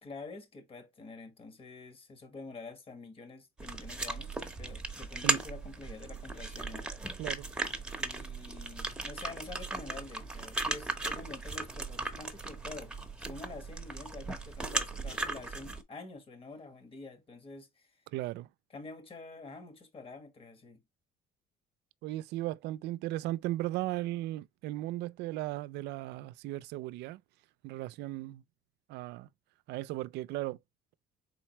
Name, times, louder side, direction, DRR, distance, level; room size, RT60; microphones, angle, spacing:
voice 1, 0.0-6.9 8.0-12.9 13.2-18.0 18.7-20.8, left 3 dB, 35° left, 1.5 m, -47 dB
sound 1, 3.6-15.8, right 2 dB, 5° right, 0.9 m, -37 dB
voice 2, 18.1-18.5 22.0-27.2 27.6-28.4 28.9-29.3 29.7-30.6, right 16 dB, 85° right, 0.4 m, -36 dB
4.4 x 3.9 x 2.9 m
cardioid pair, 110°, 17 cm